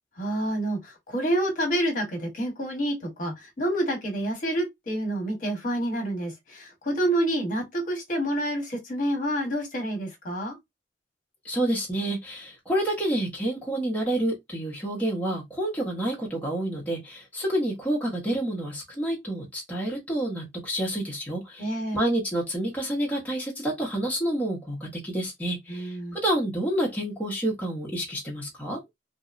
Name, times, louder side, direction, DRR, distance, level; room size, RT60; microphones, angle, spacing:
voice 1, 0.2-10.5 21.6-22.0 25.7-26.2, right 1 dB, 50° left, 1.0 m, -28 dB
voice 2, 11.4-28.8, right 1 dB, 10° left, 0.7 m, -29 dB
2.8 x 2.0 x 2.4 m
head